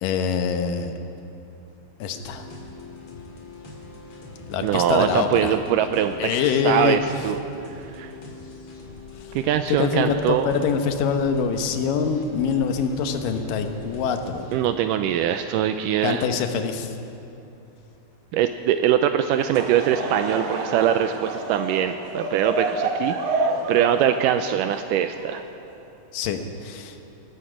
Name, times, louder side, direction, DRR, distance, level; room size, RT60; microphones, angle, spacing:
voice 1, 0.0-0.9 2.0-2.5 4.5-5.6 6.2-7.0 9.2-9.3 9.7-14.5 16.0-17.0 26.1-27.0, left 6 dB, 75° left, 7 dB, 2.6 m, -24 dB
sound 1, 2.1-14.6, left 3 dB, 45° left, 2.8 m, -42 dB
voice 2, 4.6-7.4 7.9-8.1 9.4-10.5 14.5-16.3 18.3-25.4, right 10 dB, 80° right, 8 dB, 2.0 m, -22 dB
Laughter / Crowd, 19.3-25.8, right 3 dB, 60° right, 1.9 m, -29 dB
19.5 x 14.5 x 5.0 m, 2.8 s
omnidirectional pair, 4.0 m